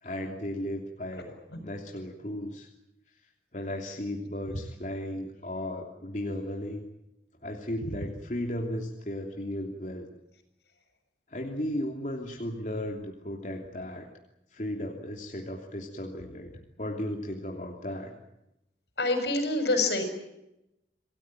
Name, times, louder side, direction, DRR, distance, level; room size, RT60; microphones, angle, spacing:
voice 1, 0.0-2.7 3.5-6.8 7.4-10.1 11.3-14.1 14.5-16.5 16.8-18.1, left 1 dB, 45° left, 1 dB, 3.1 m, -35 dB
voice 2, 19.0-20.0, left 2 dB, 80° left, 7 dB, 6.6 m, -26 dB
27.5 x 19.0 x 9.1 m, 0.87 s
head